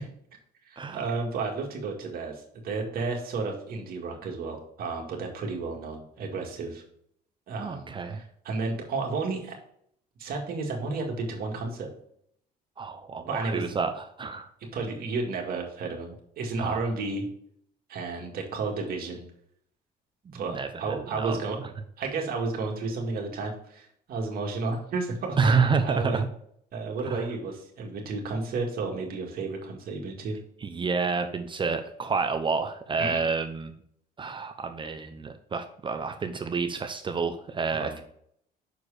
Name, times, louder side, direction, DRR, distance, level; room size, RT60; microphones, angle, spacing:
voice 1, 0.7-6.8 7.5-8.0 8.4-9.6 10.2-11.9 13.3-13.7 14.7-17.2 17.9-19.2 20.3-21.6 22.0-25.5 25.8-26.2 26.7-30.4 33.0-33.3 37.7-38.0, right 3 dB, 60° right, 1 dB, 2.1 m, -32 dB
voice 2, 7.6-8.2 12.8-14.5 16.6-16.8 20.3-21.4 25.4-26.3 27.0-27.2 30.6-33.7 34.2-38.0, right 4 dB, 30° right, 7 dB, 0.7 m, -29 dB
6.4 x 4.7 x 4.9 m, 0.67 s
cardioid pair, 110°, 17 cm